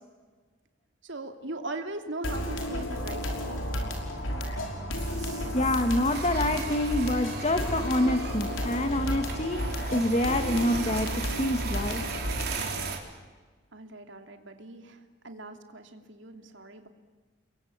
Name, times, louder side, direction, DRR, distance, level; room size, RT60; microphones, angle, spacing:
voice 1, 1.0-3.7 13.7-16.9, right 2 dB, 70° right, 6 dB, 2.9 m, -40 dB
sound 1, 2.2-12.9, equal, 90° left, 5.5 m, -32 dB
voice 2, 5.0-12.0, left 1 dB, 35° left, 7 dB, 1.7 m, -27 dB
sound 2, 5.0-8.0, right 6 dB, 20° right, 5.0 m, -50 dB
sound 3, 6.1-13.0, right 5 dB, 50° right, 4.1 m, -38 dB
30.0 x 22.5 x 8.8 m, 1.4 s
head